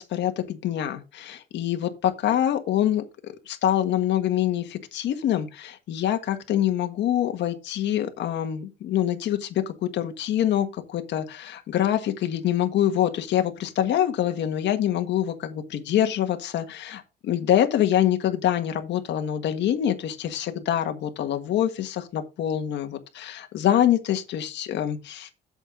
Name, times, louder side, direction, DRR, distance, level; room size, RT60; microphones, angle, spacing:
voice 1, 0.0-25.3, left 11 dB, 75° left, 1.6 m, -25 dB
8.1 x 7.4 x 3.8 m
cardioid pair, 140°, 19 cm